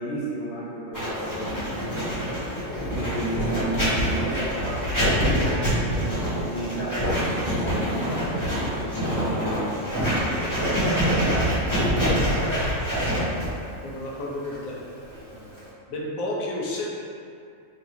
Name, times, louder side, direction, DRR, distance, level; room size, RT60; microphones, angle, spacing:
voice 1, 0.0-1.6 2.9-9.7 10.5-11.5, right 1 dB, 60° left, -7 dB, 1.1 m, -34 dB
Writing, 0.9-15.7, equal, 15° left, 1.3 m, -25 dB
voice 2, 13.8-14.8 15.3-15.6 15.9-16.9, left 1 dB, 80° left, -3 dB, 1.1 m, -31 dB
5.0 x 2.8 x 2.7 m, 2.4 s
omnidirectional pair, 1.4 m